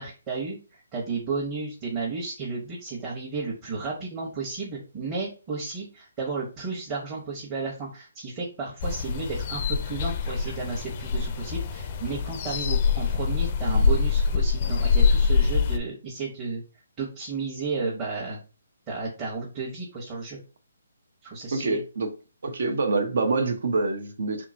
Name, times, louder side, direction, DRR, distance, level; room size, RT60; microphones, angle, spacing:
voice 1, 0.0-16.6 17.0-18.4 18.9-20.4 21.2-21.8, right 4 dB, 25° right, 1.2 m, -33 dB
sound 1, 8.8-15.8, left 5 dB, 35° left, 0.4 m, -24 dB
voice 2, 21.5-22.1 22.4-24.5, right 3 dB, 65° right, 0.9 m, -26 dB
3.4 x 2.9 x 3.8 m
hypercardioid pair, 150°, 0 cm